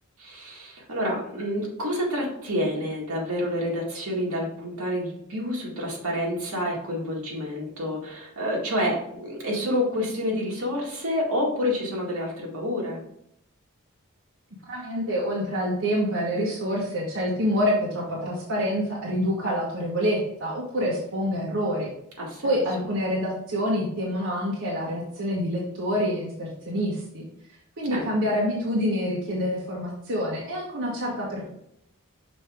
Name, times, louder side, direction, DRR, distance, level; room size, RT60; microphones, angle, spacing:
voice 1, 0.2-13.0 22.2-22.5 27.9-28.1, left 1 dB, 80° right, -2 dB, 1.9 m, -28 dB
voice 2, 14.7-21.9 22.4-27.3 27.8-31.5, equal, 60° right, -4 dB, 1.3 m, -27 dB
6.2 x 4.5 x 3.6 m, 0.75 s
head